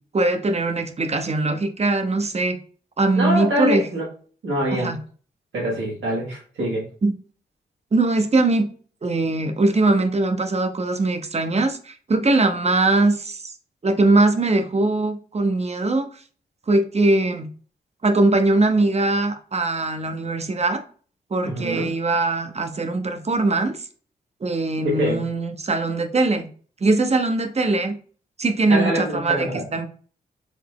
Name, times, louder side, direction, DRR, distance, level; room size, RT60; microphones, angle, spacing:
voice 1, 0.1-2.6 3.0-3.8 4.7-5.0 7.0-7.1 7.9-8.7 9.0-13.5 13.8-16.1 16.7-17.5 18.0-20.8 21.3-23.8 24.4-26.5 26.8-28.0 28.4-29.9, right 2 dB, 35° right, 0.7 m, -21 dB
voice 2, 3.2-4.1 4.4-4.9 5.5-6.8 21.4-21.8 24.8-25.2 28.7-29.7, equal, 80° right, 1.5 m, -24 dB
4.0 x 2.0 x 3.5 m
supercardioid pair, 40°, 19 cm